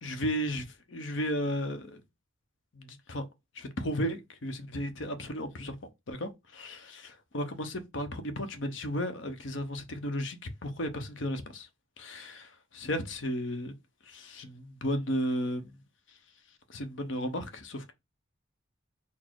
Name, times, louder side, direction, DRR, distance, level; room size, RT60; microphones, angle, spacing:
voice 1, 0.0-2.0 2.7-3.2 3.6-5.8 6.1-7.1 7.3-11.7 12.0-13.7 14.1-15.7 16.7-17.9, equal, 65° left, 0.7 m, -34 dB
4.1 x 2.0 x 4.5 m
head